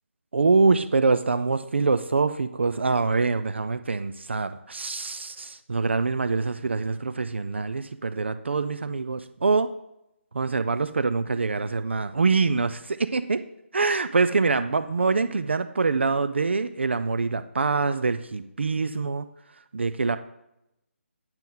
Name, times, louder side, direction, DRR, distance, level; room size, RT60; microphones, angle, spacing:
voice 1, 0.3-9.7 10.3-13.4 13.7-19.3 19.7-20.2, right 4 dB, 55° right, 11 dB, 0.4 m, -24 dB
8.9 x 6.2 x 3.7 m, 0.84 s
figure-of-eight pair, 150°, 7 cm